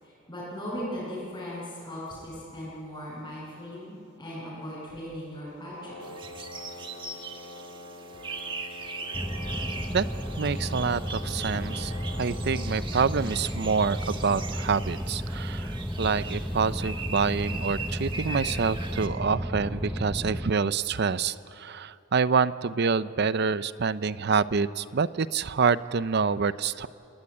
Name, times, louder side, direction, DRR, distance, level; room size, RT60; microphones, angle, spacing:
voice 1, 0.0-6.0, equal, 20° left, -11 dB, 7.8 m, -38 dB
Brass instrument, 5.7-12.8, left 1 dB, 80° right, 7.3 m, -45 dB
sound 1, 6.0-19.1, right 4 dB, 25° right, 1.5 m, -40 dB
sound 2, 9.1-20.6, equal, ahead, 0.7 m, -33 dB
voice 2, 10.4-11.9 12.2-26.9, right 5 dB, 55° right, 15 dB, 0.6 m, -27 dB
28.5 x 18.5 x 9.8 m, 2.7 s
head